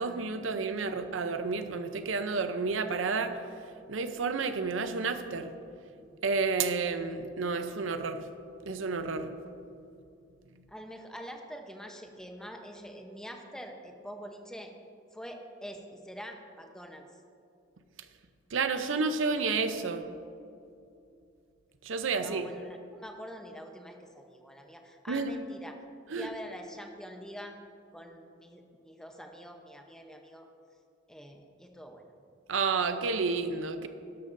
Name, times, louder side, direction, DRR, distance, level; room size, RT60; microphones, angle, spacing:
voice 1, 0.0-3.3 3.9-5.5 6.2-8.2 8.7-9.3 18.5-20.0 21.8-22.4 25.1-25.3 26.1-26.3 32.5-33.9, right 4 dB, 90° right, 9 dB, 0.6 m, -30 dB
voice 2, 10.7-14.7 15.1-17.0 22.1-25.8 26.1-27.6 27.9-30.5 31.1-32.1, equal, 5° left, 3 dB, 0.8 m, -45 dB
12.5 x 11.5 x 2.6 m, 2.5 s
head